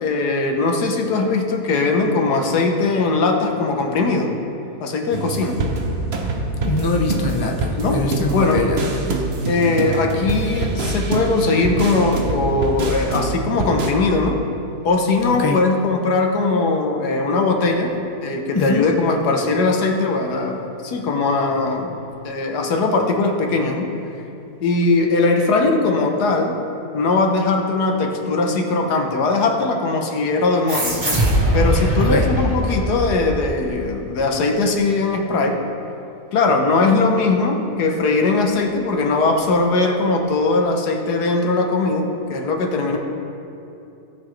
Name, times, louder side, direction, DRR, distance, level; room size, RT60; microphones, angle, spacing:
voice 1, 0.0-4.3 4.8-5.6 7.8-8.0 8.3-8.6 9.5-14.4 14.8-17.9 18.2-22.0 22.2-23.9 24.6-26.6 26.9-31.0 31.5-35.6 36.3-43.0, left 3 dB, 80° left, 2 dB, 1.6 m, -20 dB
sound 1, 5.1-13.9, right 2 dB, 50° right, 1.0 m, -25 dB
voice 2, 6.6-9.2 15.4-15.6 18.5-18.9 32.0-32.3, left 2 dB, 30° left, 1 dB, 0.4 m, -23 dB
sound 2, 30.7-33.7, right 1 dB, 30° right, 1.7 m, -20 dB
17.5 x 6.0 x 3.3 m, 2.9 s
omnidirectional pair, 1.7 m